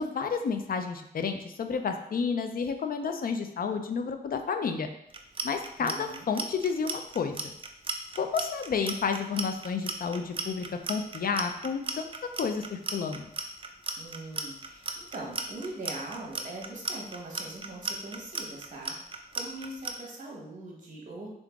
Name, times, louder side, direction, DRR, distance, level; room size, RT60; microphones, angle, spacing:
voice 1, 0.0-4.9 5.4-7.5 8.2-12.0 12.4-13.3, left 5 dB, 65° left, 7 dB, 0.4 m, -31 dB
Clock, 5.1-19.9, right 4 dB, 35° right, 0.4 m, -35 dB
voice 2, 5.8-6.3 14.0-21.3, right 2 dB, 55° right, -2 dB, 1.3 m, -41 dB
3.7 x 3.7 x 3.5 m, 0.77 s
wide cardioid pair, 130°, 16 cm